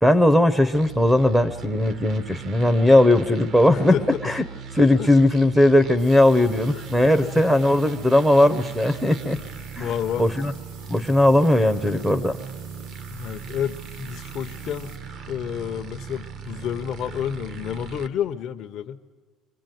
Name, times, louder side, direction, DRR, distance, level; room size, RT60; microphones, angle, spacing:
voice 1, 0.0-4.0 4.2-4.4 4.7-9.4 9.8-9.9 10.2-10.5 10.9-12.4, left 1 dB, 5° right, 14 dB, 0.8 m, -18 dB
sound 1, 0.7-18.1, right 6 dB, 55° right, 1.2 m, -38 dB
voice 2, 3.7-4.2 5.0-5.3 6.6-6.8 7.2-7.6 9.3-9.5 9.8-10.3 13.1-14.9 15.3-19.0, left 9 dB, 50° left, 5 dB, 0.8 m, -30 dB
sound 2, 6.0-15.0, right 4 dB, 85° right, 4.7 m, -49 dB
24.5 x 20.5 x 9.2 m, 1.4 s
cardioid pair, 135°, 0 cm